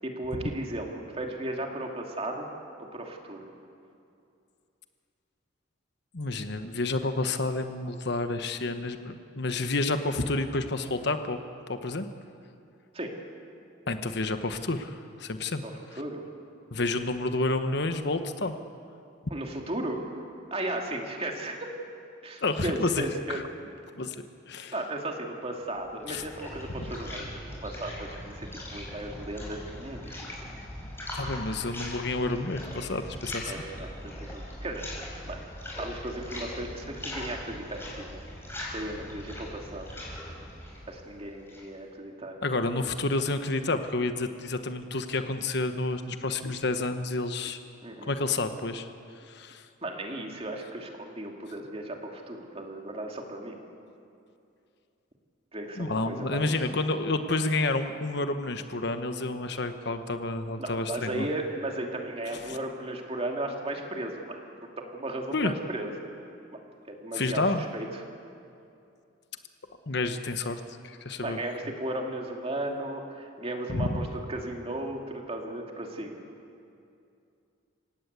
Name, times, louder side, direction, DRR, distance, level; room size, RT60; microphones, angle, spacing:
voice 1, 0.0-2.5 2.8-3.4 12.9-13.2 15.6-16.2 19.3-20.2 20.5-21.7 22.2-23.4 24.7-27.3 27.6-30.1 33.5-34.9 35.3-35.4 35.8-38.2 38.7-39.9 40.9-42.4 47.8-48.1 49.8-53.6 55.5-56.5 60.6-65.9 66.5-66.6 66.9-68.0 71.2-76.2, right 1 dB, 30° right, 1 dB, 2.6 m, -35 dB
voice 2, 6.1-11.4 11.7-12.1 13.9-15.6 16.7-18.5 22.4-23.4 23.9-24.2 24.5-24.7 26.1-26.2 31.1-33.5 42.4-47.6 48.1-48.9 49.2-49.7 55.8-61.3 62.5-62.6 65.3-65.5 67.1-67.6 69.9-71.4 73.7-74.0, left 2 dB, 60° left, 8 dB, 1.2 m, -29 dB
sound 1, 25.7-41.8, left 1 dB, 10° left, 5.6 m, -40 dB
28.5 x 17.5 x 8.2 m, 2.6 s
head